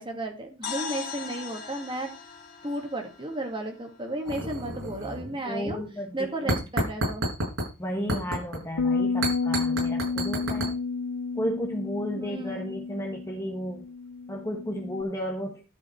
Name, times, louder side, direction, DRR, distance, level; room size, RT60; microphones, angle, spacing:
voice 1, 0.0-2.1 2.6-5.8 6.1-7.3 12.1-12.7, right 1 dB, 25° right, 3 dB, 2.1 m, -33 dB
sound 1, 0.6-4.6, left 6 dB, 50° left, 3.2 m, -40 dB
sound 2, 4.3-5.4 5.7-5.9 6.5-7.7 8.1-8.6 9.2-10.7, right 1 dB, 90° right, 7.0 m, -30 dB
voice 2, 5.4-6.5 7.8-10.8 11.3-13.9 14.3-15.6, equal, 15° left, 0 dB, 1.3 m, -33 dB
sound 3, 8.8-15.0, left 4 dB, 85° left, 0.5 m, -30 dB
13.0 x 5.5 x 4.5 m, 0.30 s
head